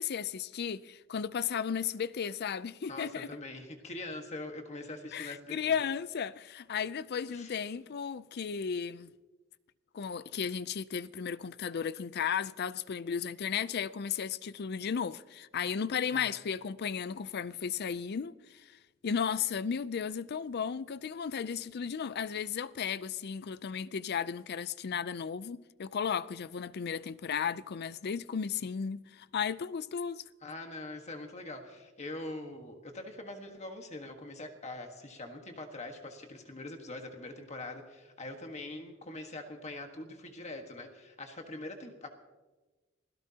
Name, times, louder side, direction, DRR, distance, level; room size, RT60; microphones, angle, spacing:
voice 1, 0.0-3.3 5.1-9.1 9.9-18.7 19.0-30.2, left 7 dB, 55° left, 0.5 m, -34 dB
voice 2, 2.9-5.8 7.3-7.6 16.1-16.4 30.4-42.1, left 2 dB, 35° left, 1.5 m, -43 dB
27.5 x 17.0 x 2.9 m
head